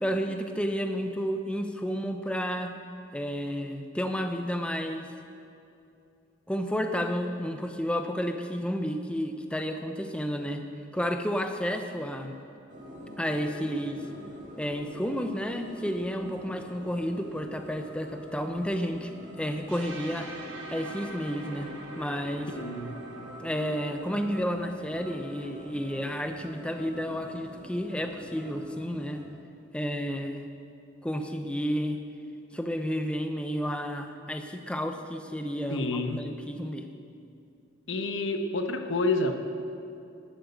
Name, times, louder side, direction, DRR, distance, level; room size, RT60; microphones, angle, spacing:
voice 1, 0.0-2.7 3.1-5.1 6.5-10.6 10.9-12.4 13.2-14.0 14.6-19.1 19.4-20.3 20.7-21.7 22.0-22.5 23.4-29.3 29.7-30.4 31.0-32.0 32.5-36.9, equal, 5° left, 6 dB, 0.7 m, -31 dB
sound 1, 12.7-29.3, equal, 40° right, 2.0 m, -46 dB
sound 2, 19.7-27.5, right 2 dB, 85° right, 1.5 m, -45 dB
voice 2, 22.6-23.0 35.7-36.2 37.9-39.4, left 2 dB, 80° left, 6 dB, 1.1 m, -29 dB
12.0 x 9.1 x 8.0 m, 2.6 s
head